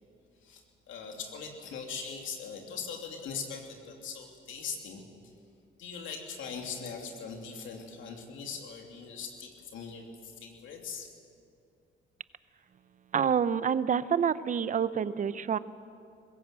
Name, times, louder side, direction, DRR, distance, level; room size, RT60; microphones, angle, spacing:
voice 1, 0.4-5.0 5.8-11.1, left 5 dB, 80° left, 2 dB, 3.0 m, -41 dB
voice 2, 13.1-15.6, right 7 dB, 40° right, 16 dB, 0.7 m, -27 dB
20.5 x 16.5 x 7.7 m, 2.6 s
cardioid pair, 90°, 20 cm